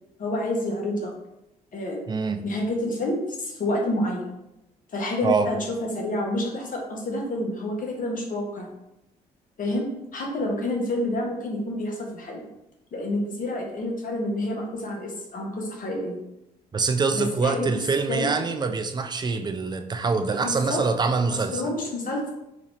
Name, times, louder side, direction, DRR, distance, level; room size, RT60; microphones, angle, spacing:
voice 1, 0.2-1.1 1.7-2.1 2.4-4.3 4.9-8.7 9.6-9.9 10.1-12.5 12.9-16.2 17.1-17.8 18.1-18.3 20.4-20.8 21.3-22.3, left 1 dB, 50° left, 0 dB, 1.1 m, -28 dB
voice 2, 2.1-2.4 5.2-5.5 16.7-21.6, right 4 dB, 25° right, 7 dB, 0.4 m, -25 dB
4.0 x 2.5 x 3.2 m, 0.90 s
hypercardioid pair, 55°, 18 cm